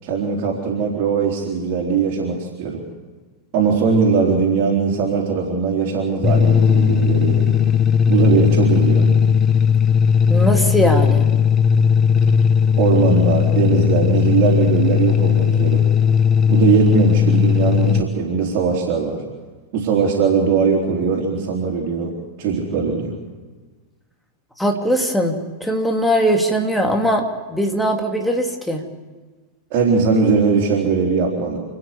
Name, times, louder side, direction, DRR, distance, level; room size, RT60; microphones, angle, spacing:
voice 1, 0.0-2.8 3.5-7.5 8.1-9.1 12.8-15.8 16.5-19.2 19.7-23.1 29.7-31.6, right 5 dB, 45° right, -4 dB, 3.7 m, -20 dB
sound 1, 6.2-18.0, left 7 dB, 25° left, 0.9 m, -16 dB
voice 2, 10.3-11.2 24.6-27.2 27.5-28.8, equal, 5° left, 2 dB, 2.6 m, -20 dB
29.0 x 9.8 x 9.7 m, 1.3 s
figure-of-eight pair, 90°, 0 cm